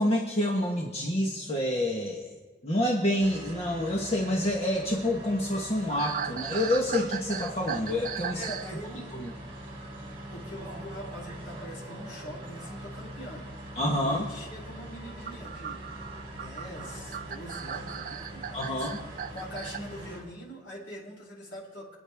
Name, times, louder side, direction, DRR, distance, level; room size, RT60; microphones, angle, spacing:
voice 1, 0.0-2.3 2.6-8.4 9.1-9.3 13.8-14.3 18.5-19.0, left 1 dB, 35° left, -1 dB, 1.5 m, -28 dB
sound 1, 3.2-20.2, right 1 dB, 30° right, 5.1 m, -43 dB
sound 2, 5.9-8.7 9.0-9.3 11.5-11.7 13.0-13.1 15.0-19.8, right 8 dB, 50° right, 0.5 m, -37 dB
voice 2, 8.3-9.2 10.3-13.5 14.0-15.8 16.3-22.0, equal, 80° left, -4 dB, 4.7 m, -43 dB
26.5 x 9.6 x 3.6 m, 1.4 s
head